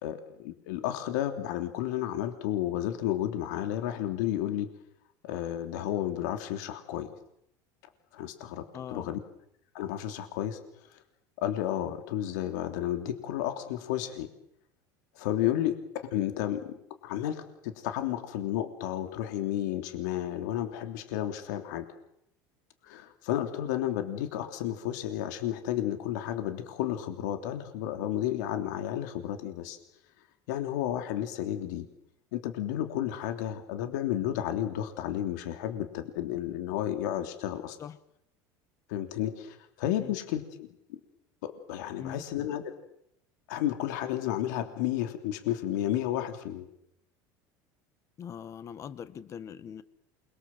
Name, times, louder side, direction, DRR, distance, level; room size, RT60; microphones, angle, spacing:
voice 1, 0.0-4.7 5.2-7.1 8.1-8.6 8.9-9.2 9.7-10.6 10.9-11.0 11.4-14.3 15.1-15.7 16.1-21.8 22.8-29.8 30.5-31.9 32.3-37.8 38.9-41.0 41.4-42.6 43.5-46.7, left 12 dB, 90° left, 6 dB, 3.2 m, -32 dB
voice 2, 8.7-9.2 37.8-38.0 40.0-40.2 42.0-42.2 48.2-49.8, left 8 dB, 35° left, 13 dB, 1.7 m, -42 dB
28.5 x 23.0 x 7.8 m, 0.75 s
cardioid pair, 145°, 9 cm